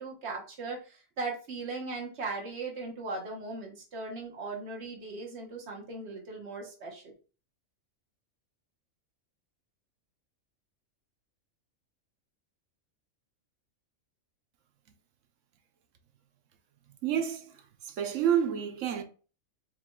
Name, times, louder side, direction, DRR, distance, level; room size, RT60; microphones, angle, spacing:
voice 1, 0.0-7.0, right 3 dB, 55° right, 1.4 m, -38 dB
voice 2, 17.0-19.0, right 9 dB, 70° right, 1.0 m, -29 dB
4.6 x 3.8 x 2.3 m
omnidirectional pair, 1.4 m